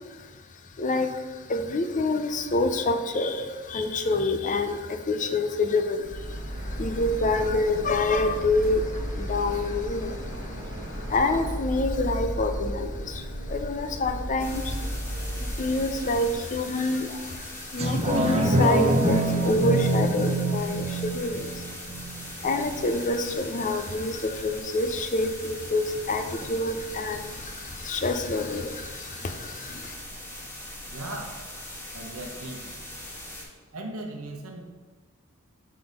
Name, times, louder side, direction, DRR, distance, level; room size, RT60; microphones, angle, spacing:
voice 1, 0.8-21.7 22.4-29.9, left 2 dB, 35° left, 7 dB, 0.5 m, -27 dB
Printer, 6.0-16.4, equal, 60° right, 1.9 m, -34 dB
mac output noise, 14.4-33.4, left 1 dB, 10° left, 1.5 m, -41 dB
sound 1, 17.8-22.8 23.3-23.4, right 1 dB, 30° right, 0.6 m, -25 dB
voice 2, 30.9-31.4 31.9-32.7 33.7-34.6, right 1 dB, 85° right, 2 dB, 0.9 m, -37 dB
6.0 x 3.8 x 5.2 m, 1.4 s
head